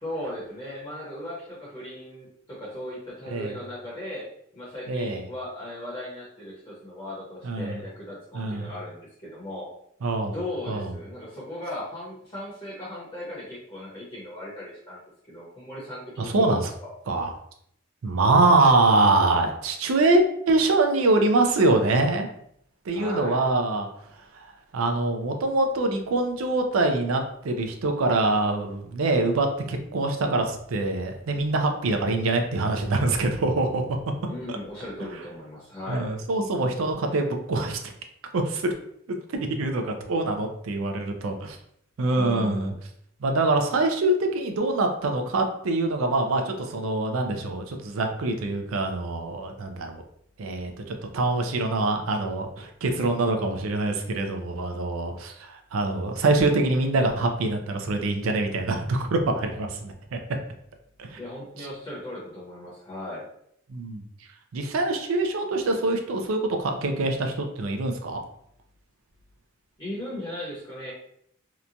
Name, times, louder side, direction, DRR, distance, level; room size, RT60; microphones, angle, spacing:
voice 1, 0.0-4.3 4.5-9.7 10.3-15.0 15.3-16.9 22.9-23.4 34.2-36.1 42.1-42.7 61.2-63.3 69.8-70.9, left 1 dB, 25° left, -7 dB, 0.8 m, -37 dB
voice 2, 4.9-5.2 7.4-7.8 8.3-8.7 10.0-10.3 10.7-10.9 16.2-16.7 17.1-17.3 18.0-22.3 22.9-23.9 24.3-24.4 24.7-34.0 34.5-34.6 35.9-37.8 38.3-38.7 39.1-39.2 39.6-41.6 42.0-42.7 43.2-50.0 50.4-60.2 61.0-61.2 63.7-64.0 64.5-68.2, right 2 dB, 85° right, 4 dB, 0.4 m, -24 dB
2.9 x 2.2 x 2.5 m, 0.71 s
head